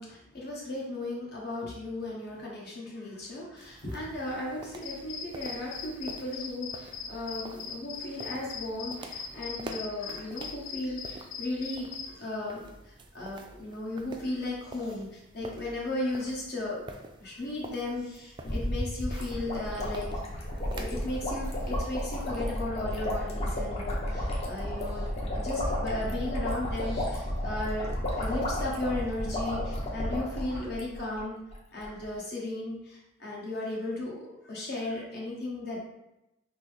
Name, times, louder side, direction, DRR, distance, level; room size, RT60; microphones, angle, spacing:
voice 1, 0.0-16.8 17.2-20.1 20.4-25.1 25.3-31.4 31.7-35.8, left 2 dB, 55° left, -4 dB, 1.2 m, -36 dB
sound 1, 3.6-22.6, right 2 dB, 25° right, 0.3 m, -48 dB
sound 2, 4.8-12.1, left 6 dB, 90° left, 0.5 m, -40 dB
sound 3, 18.4-31.2 31.5-31.6 31.8-32.0, equal, 30° left, 0.7 m, -32 dB
5.9 x 2.0 x 3.3 m, 0.92 s
head